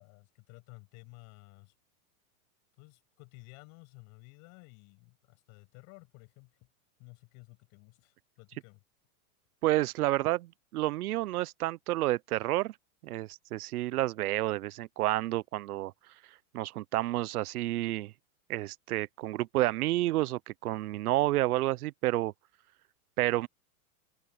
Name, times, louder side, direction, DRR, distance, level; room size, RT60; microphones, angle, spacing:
voice 1, 0.0-1.7 2.8-6.7 7.0-8.8, left 31 dB, 40° left, 7.7 m, -54 dB
voice 2, 9.6-12.7 13.0-15.9 16.5-18.1 18.5-22.3 23.2-23.5, right 16 dB, 85° right, 0.7 m, -30 dB
supercardioid pair, 165°, 44 cm